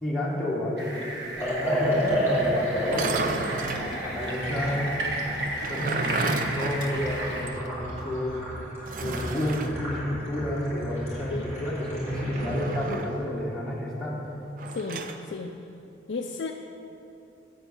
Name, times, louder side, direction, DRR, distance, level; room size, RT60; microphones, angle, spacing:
voice 1, 0.0-3.4 4.1-5.0 5.7-8.4 9.0-14.2, left 1 dB, 5° left, -7 dB, 1.4 m, -30 dB
sound 1, 0.8-7.4, right 1 dB, 60° right, 1.3 m, -35 dB
Liquid, 1.4-12.6, equal, 15° right, 2.3 m, -32 dB
sound 2, 2.8-3.9 5.4-7.7 8.0-8.1 8.9-9.7 12.2-13.2 14.6-15.2, right 3 dB, 45° right, 0.5 m, -32 dB
voice 2, 14.7-15.5 16.1-16.5, left 4 dB, 70° left, 2 dB, 0.4 m, -34 dB
7.9 x 7.2 x 6.3 m, 2.8 s
head